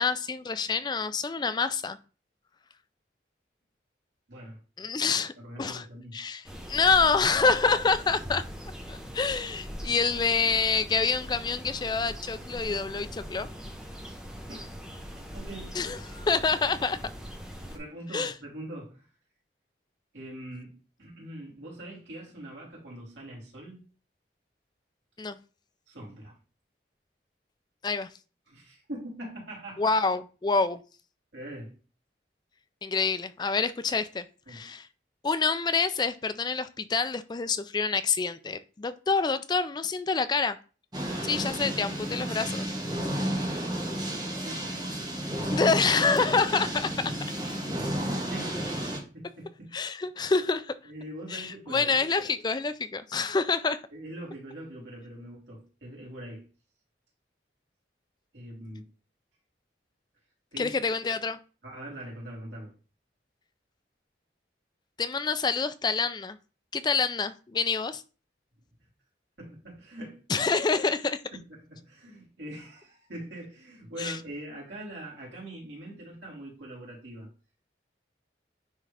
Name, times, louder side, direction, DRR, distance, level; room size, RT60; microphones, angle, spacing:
voice 1, 0.0-2.0 4.8-5.3 5.6-5.8 6.1-8.4 8.9-13.5 15.7-17.0 18.1-18.3 25.2-25.4 27.8-28.1 29.8-30.8 32.8-34.9 35.2-40.6 41.2-42.7 45.5-47.1 49.7-50.7 51.3-53.8 60.6-61.4 65.0-66.4 66.7-68.0 70.3-71.2 74.0-74.2, left 4 dB, 25° left, 0.3 m, -27 dB
voice 2, 4.3-6.2 14.5-14.7 15.2-16.4 17.6-19.1 20.1-23.8 25.9-26.4 28.5-29.9 31.3-31.8 34.5-34.7 44.4-44.9 47.9-48.7 49.1-49.7 50.8-52.0 53.9-56.5 58.3-58.9 60.5-60.8 61.6-62.7 69.4-70.2 71.3-77.3, right 1 dB, 80° right, 3.6 m, -43 dB
sound 1, 6.4-17.8, equal, 5° right, 0.9 m, -41 dB
sound 2, 40.9-49.0, right 1 dB, 20° right, 1.7 m, -32 dB
9.7 x 3.6 x 3.4 m
head